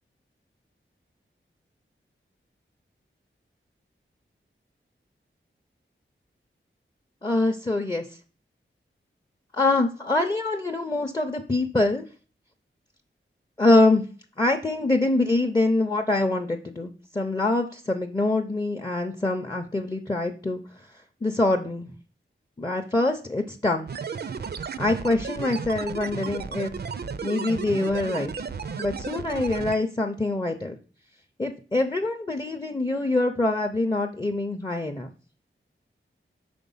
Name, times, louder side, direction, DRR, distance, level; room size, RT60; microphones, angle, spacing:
voice 1, 7.2-8.1 9.5-12.1 13.6-14.1 14.4-20.6 21.2-21.9 22.6-23.9 24.8-26.7 27.2-28.5 28.8-30.7 31.4-35.1, left 2 dB, 20° left, 5 dB, 0.5 m, -24 dB
sound 1, 23.9-29.8, right 5 dB, 50° right, 0.4 m, -34 dB
5.1 x 3.8 x 5.5 m, 0.39 s
wide cardioid pair, 75°, 21 cm